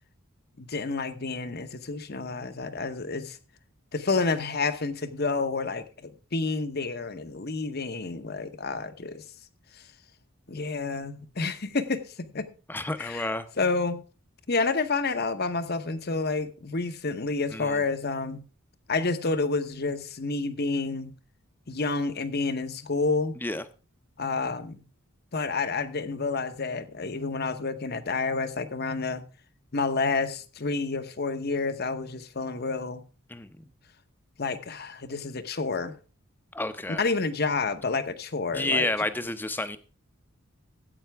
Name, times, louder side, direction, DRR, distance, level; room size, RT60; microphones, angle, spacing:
voice 1, 0.6-3.4 3.9-9.2 10.5-12.5 13.0-13.3 13.6-14.0 14.5-18.4 18.9-21.1 21.7-23.4 24.2-24.8 25.3-29.2 29.7-33.0 34.4-36.0 36.9-38.9, left 3 dB, 50° left, 0.9 m, -29 dB
voice 2, 12.7-13.5 17.5-17.8 23.4-23.6 33.3-33.6 36.5-37.0 38.5-39.8, left 2 dB, 10° left, 0.7 m, -30 dB
14.0 x 8.7 x 3.4 m
head